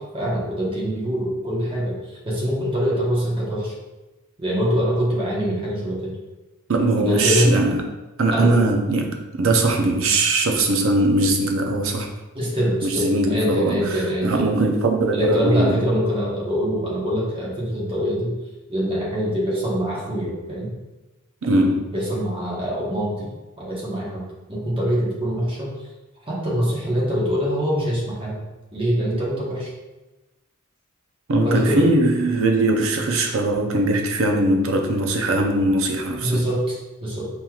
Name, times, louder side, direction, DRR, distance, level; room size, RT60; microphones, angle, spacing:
voice 1, 0.0-2.0 2.2-3.7 4.4-6.1 7.0-7.5 8.3-8.6 12.3-14.5 15.1-18.3 18.7-20.7 21.9-23.3 23.6-24.2 24.5-25.7 26.3-28.4 28.7-29.7 31.4-31.9 36.2-37.3, equal, 25° right, -5 dB, 1.0 m, -24 dB
voice 2, 6.7-7.9 8.2-12.1 12.8-15.9 21.4-21.9 31.3-36.3, right 2 dB, 65° right, 3 dB, 0.6 m, -20 dB
5.3 x 3.0 x 2.4 m, 1.1 s
head